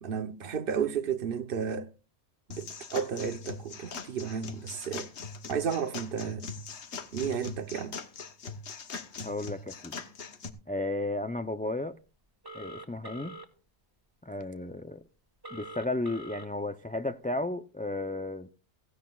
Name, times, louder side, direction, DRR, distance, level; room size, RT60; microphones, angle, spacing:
voice 1, 0.0-1.9 2.5-5.1 5.5-6.5 7.1-8.0, right 7 dB, 55° right, 1.0 m, -32 dB
sound 1, 2.5-10.5, left 4 dB, 75° left, 1.4 m, -41 dB
voice 2, 9.2-10.0 10.7-12.0 12.5-13.3 14.2-15.0 15.5-18.5, left 2 dB, 15° left, 0.3 m, -33 dB
Telephone, 12.4-13.5 15.4-16.5, right 1 dB, 20° right, 1.6 m, -43 dB
16.5 x 15.5 x 2.4 m
omnidirectional pair, 1.2 m